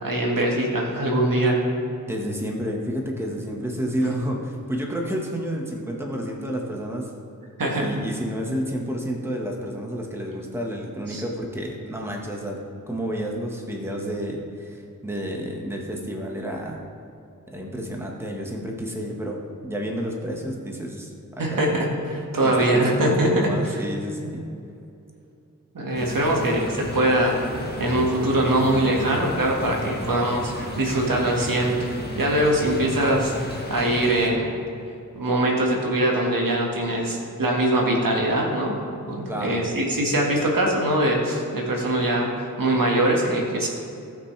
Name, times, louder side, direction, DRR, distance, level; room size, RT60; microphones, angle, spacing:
voice 1, 0.0-1.6 7.6-7.9 11.1-11.2 21.4-23.8 25.7-34.6 35.1-38.7 39.1-43.7, right 1 dB, 75° right, -2 dB, 1.9 m, -22 dB
voice 2, 2.1-7.1 7.8-12.6 12.9-16.8 17.5-21.7 22.4-24.4 39.3-39.6, equal, 5° right, -1 dB, 1.5 m, -30 dB
sound 1, 25.9-34.3, left 1 dB, 30° left, 1.6 m, -33 dB
18.0 x 6.2 x 3.3 m, 2.6 s
wide cardioid pair, 80°, 33 cm